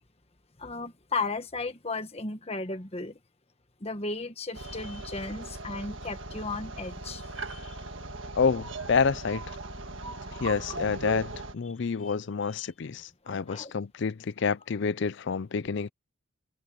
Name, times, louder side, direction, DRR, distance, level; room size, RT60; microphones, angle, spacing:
voice 1, 0.6-3.2 3.8-7.8 12.0-12.1 12.6-12.7 13.3-13.7, left 3 dB, 30° left, 1.5 m, -35 dB
sound 1, 4.5-11.6, right 2 dB, 60° right, 1.7 m, -39 dB
voice 2, 8.3-9.5 10.4-15.9, left 5 dB, 55° left, 0.5 m, -28 dB
head